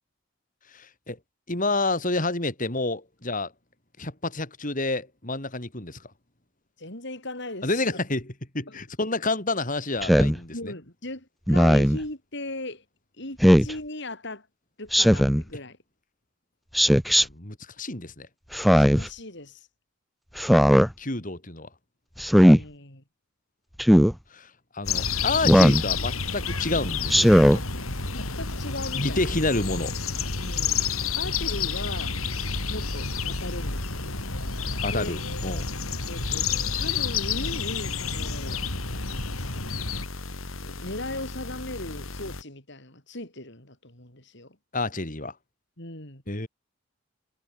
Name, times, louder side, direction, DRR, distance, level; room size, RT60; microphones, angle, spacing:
voice 1, 0.7-1.2 1.5-3.5 4.0-6.0 7.6-8.2 8.5-10.7 17.2-18.3 21.0-21.7 24.3-27.6 28.9-30.0 34.8-35.7 44.7-45.3 46.3-46.5, left 2 dB, 40° left, 4.1 m, -29 dB
voice 2, 6.8-8.0 8.7-8.8 10.5-12.8 13.2-14.5 14.8-15.8 18.7-19.7 22.4-23.0 28.1-29.3 30.4-30.8 31.2-32.2 32.7-34.2 34.8-35.1 36.1-36.5 36.8-38.6 38.9-39.7 40.6-44.6 45.8-46.2, left 2 dB, 55° left, 7.3 m, -38 dB
Speech synthesizer, 10.0-10.4 11.5-12.0 13.4-13.7 14.9-15.4 16.7-17.2 18.5-19.1 20.4-20.9 22.2-22.6 23.8-24.1 25.4-25.8 27.1-27.6, equal, ahead, 0.8 m, -17 dB
sound 1, 24.8-42.4, left 2 dB, 75° left, 2.9 m, -38 dB
sound 2, 24.9-40.1, left 5 dB, 90° left, 6.8 m, -30 dB
head